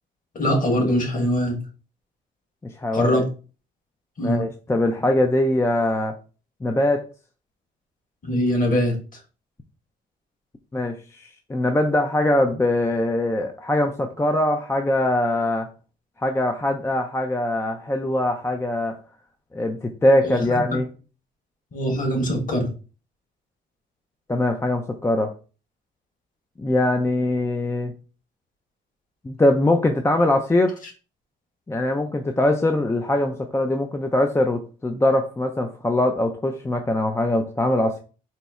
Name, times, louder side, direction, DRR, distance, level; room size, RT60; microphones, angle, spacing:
voice 1, 0.3-1.5 2.9-3.2 4.2-4.4 8.2-9.0 20.2-20.6 21.7-22.7, equal, 45° left, 2 dB, 1.5 m, -22 dB
voice 2, 2.6-3.2 4.2-6.2 6.6-7.1 10.7-11.0 11.5-15.7 16.2-19.0 19.5-20.9 24.3-25.3 26.6-27.9 29.2-30.8 31.7-38.0, left 1 dB, 15° left, 5 dB, 0.4 m, -22 dB
4.2 x 2.0 x 3.5 m, 0.34 s
cardioid pair, 90°, 20 cm